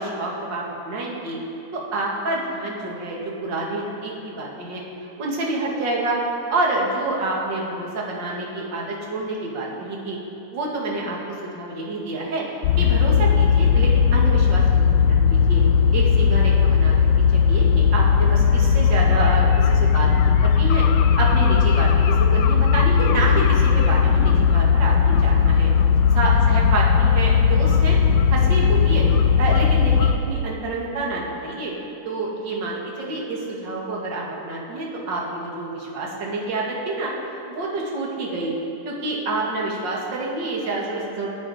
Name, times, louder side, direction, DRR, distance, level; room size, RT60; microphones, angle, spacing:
voice 1, 0.0-1.4 1.7-6.2 6.5-10.2 10.5-12.4 12.8-15.6 15.9-16.9 17.3-20.8 21.2-25.7 26.1-28.0 28.3-29.1 29.4-31.7 32.0-37.1 37.5-38.5 38.8-41.3, right 2 dB, 40° right, -3 dB, 2.6 m, -28 dB
sound 1, 12.6-30.1, left 6 dB, 75° left, 1.6 m, -17 dB
22.5 x 9.5 x 5.1 m, 2.9 s
omnidirectional pair, 3.6 m